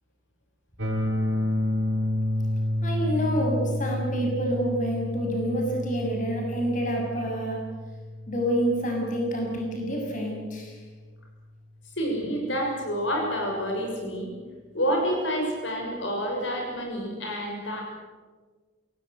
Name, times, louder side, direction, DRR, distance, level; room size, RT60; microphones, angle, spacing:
sound 1, 0.8-10.7, left 1 dB, 85° right, 5.9 m, -30 dB
voice 1, 2.8-7.6 8.3-10.7, equal, 40° left, 0 dB, 6.8 m, -28 dB
voice 2, 12.0-14.3 14.7-17.8, equal, 75° left, 1 dB, 6.7 m, -28 dB
27.5 x 18.5 x 8.1 m, 1.4 s
head